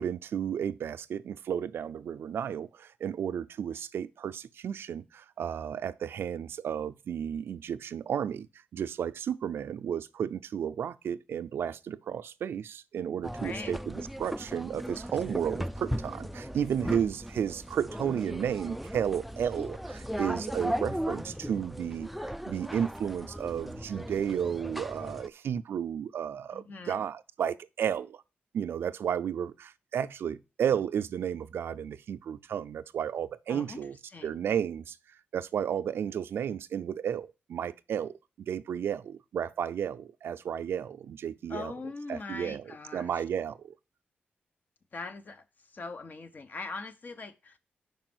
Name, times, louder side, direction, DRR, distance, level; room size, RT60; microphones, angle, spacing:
voice 1, 0.0-8.5 8.7-22.1 22.5-28.2 28.5-34.0 34.2-35.0 35.3-41.7 42.1-43.7, right 8 dB, 80° right, 0.4 m, -33 dB
sound 1, 13.2-25.3, equal, ahead, 0.3 m, -37 dB
voice 2, 13.4-13.7 26.5-27.0 33.5-33.8 34.1-34.4 41.5-43.2 44.9-45.4 45.7-47.6, left 3 dB, 50° left, 0.9 m, -41 dB
5.3 x 4.8 x 6.0 m
cardioid pair, 95°, 4 cm